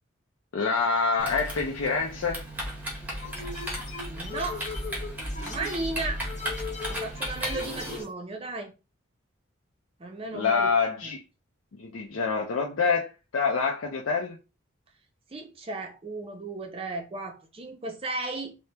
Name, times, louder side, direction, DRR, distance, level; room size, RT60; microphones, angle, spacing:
voice 1, 0.5-2.4 10.3-11.2 11.8-14.4, left 5 dB, 75° left, 0.5 m, -26 dB
Typing, 1.2-8.0, equal, 10° right, 0.8 m, -35 dB
sound 1, 3.2-8.1, left 4 dB, 35° left, 0.6 m, -39 dB
voice 2, 4.1-4.7 5.4-6.2 6.9-8.7 10.0-10.7 11.0-11.1 15.3-18.6, right 2 dB, 30° right, 0.5 m, -35 dB
3.3 x 2.1 x 2.8 m
head